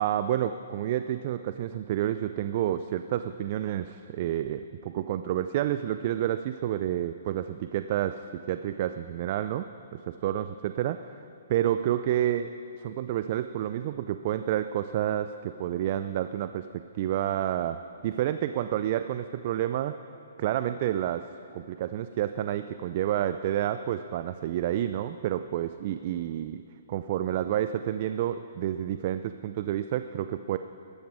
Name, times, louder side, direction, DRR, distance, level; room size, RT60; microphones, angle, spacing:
voice 1, 0.0-8.2 8.5-9.7 9.9-11.2 11.5-16.7 16.9-20.0 20.4-21.2 21.5-26.6 26.9-30.6, right 11 dB, 45° right, 11 dB, 0.4 m, -29 dB
13.5 x 12.0 x 4.8 m, 2.5 s
hypercardioid pair, 135°, 0 cm